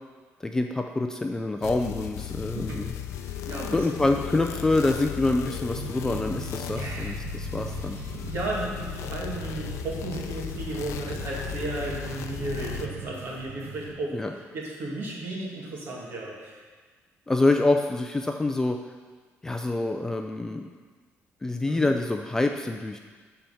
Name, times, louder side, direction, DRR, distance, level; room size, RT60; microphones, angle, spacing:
voice 1, 0.4-2.9 3.7-8.0 14.1-14.3 17.3-18.8 19.4-20.7 21.4-23.0, left 2 dB, 10° left, 4 dB, 0.4 m, -26 dB
sound 1, 1.6-12.9, left 10 dB, 75° left, 0.5 m, -36 dB
voice 2, 2.4-4.0 6.8-7.1 7.8-16.6 21.7-21.9, right 2 dB, 50° right, -3 dB, 2.2 m, -35 dB
sound 2, 5.7-13.9, right 6 dB, 85° right, 1.2 m, -40 dB
12.5 x 4.5 x 5.7 m, 1.5 s
cardioid pair, 175°, 5 cm